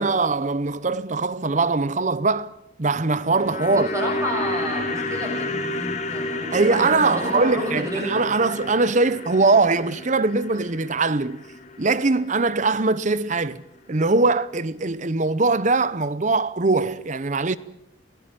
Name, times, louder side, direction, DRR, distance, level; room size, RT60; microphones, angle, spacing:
voice 1, 0.0-2.5 2.8-3.9 6.5-11.4 11.8-13.6 13.9-17.6, right 3 dB, 40° right, 0.8 m, -21 dB
sound 1, 3.0-13.3 13.6-13.7, left 2 dB, 40° left, 1.9 m, -32 dB
voice 2, 3.6-8.2, equal, 15° right, 7.1 m, -30 dB
22.0 x 16.5 x 8.9 m
head